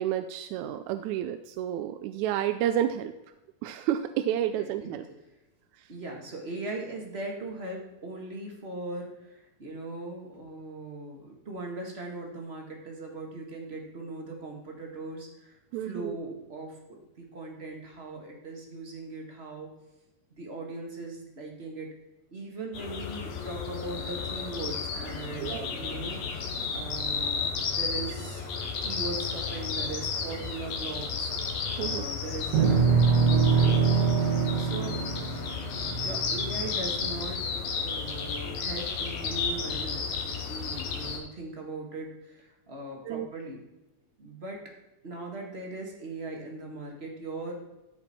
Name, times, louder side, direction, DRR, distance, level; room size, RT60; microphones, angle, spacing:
voice 1, 0.0-3.1 3.6-5.1 15.7-16.2 25.4-25.7 31.8-32.1 43.1-43.3, right 11 dB, 80° right, 9 dB, 1.9 m, -30 dB
voice 2, 4.6-5.0 5.9-19.7 20.3-21.9 22.3-26.2 26.7-28.4 28.8-31.3 31.8-33.8 34.6-35.0 35.9-37.4 37.8-43.6 44.2-44.6 45.0-47.6, right 2 dB, 30° right, 0 dB, 1.2 m, -39 dB
sound 1, 22.7-41.2, left 5 dB, 65° left, 2.3 m, -33 dB
sound 2, 32.5-37.0, right 5 dB, 60° right, 2.2 m, -24 dB
14.0 x 5.3 x 4.3 m, 0.96 s
omnidirectional pair, 3.5 m